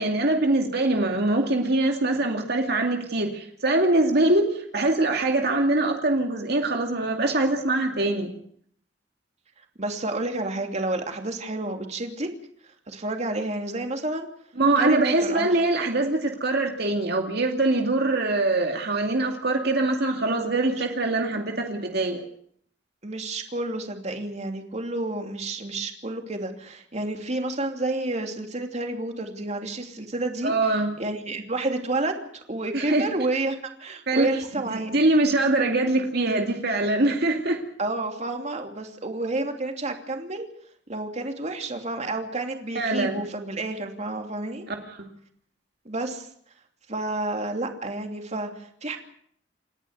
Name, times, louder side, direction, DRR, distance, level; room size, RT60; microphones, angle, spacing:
voice 1, 0.0-8.3 14.6-22.2 30.4-30.9 32.7-33.1 34.1-34.3 34.7-37.6 42.7-43.2 44.7-45.1, right 2 dB, 60° right, 3 dB, 2.4 m, -23 dB
voice 2, 9.8-12.3 12.6-14.3 14.8-15.6 20.7-20.9 23.0-30.5 31.0-34.9 37.8-40.5 40.9-44.7 45.8-46.3 46.9-49.0, right 2 dB, 40° right, 4 dB, 2.9 m, -30 dB
28.5 x 11.0 x 9.6 m, 0.64 s
head